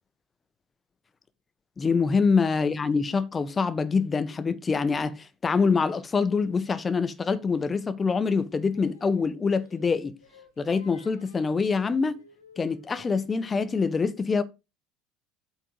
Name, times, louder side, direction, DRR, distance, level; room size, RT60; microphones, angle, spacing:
voice 1, 1.8-10.2 10.6-12.2 12.6-14.4, left 5 dB, 25° left, 1.3 m, -25 dB
Singing, 8.2-13.4, left 4 dB, 85° left, 2.1 m, -54 dB
8.7 x 4.4 x 7.0 m
figure-of-eight pair, 65°, 0 cm